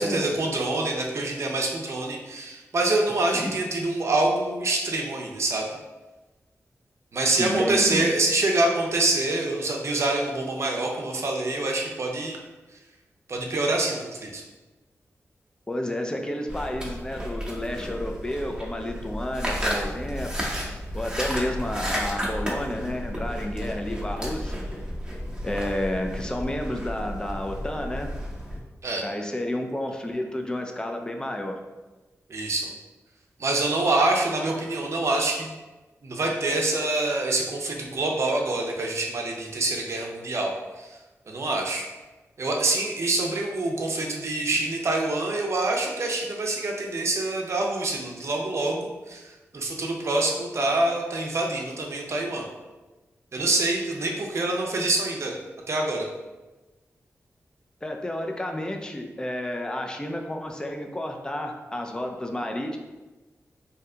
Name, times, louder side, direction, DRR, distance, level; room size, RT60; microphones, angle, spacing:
voice 1, 0.0-5.7 7.1-12.4 13.3-14.4 28.8-29.0 32.3-32.7 33.4-35.5 36.0-41.0 41.3-41.9 42.4-52.4 53.3-55.3 55.7-56.0, right 2 dB, 60° right, 0 dB, 0.6 m, -26 dB
voice 2, 7.4-8.1 15.7-20.3 20.9-24.6 25.4-28.1 29.0-31.6 57.8-62.8, left 1 dB, 15° left, 3 dB, 0.4 m, -31 dB
sound 1, 16.5-28.6, equal, 15° right, 0.8 m, -32 dB
2.7 x 2.2 x 3.7 m, 1.2 s
cardioid pair, 65°, 5 cm